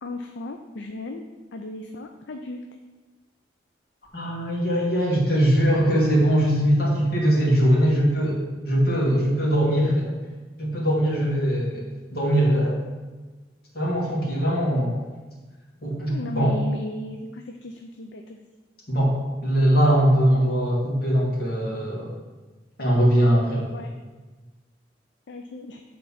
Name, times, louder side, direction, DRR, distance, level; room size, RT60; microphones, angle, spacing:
voice 1, 0.0-1.2 1.5-2.6 16.1-18.4 23.7-23.9 25.3-25.8, left 1 dB, 70° left, 4 dB, 0.5 m, -35 dB
voice 2, 4.1-10.1 10.6-11.8 12.1-12.8 13.7-15.0 15.8-16.6 18.9-22.1 22.8-23.7, equal, 55° left, -4 dB, 2.3 m, -21 dB
8.4 x 3.9 x 5.8 m, 1.3 s
head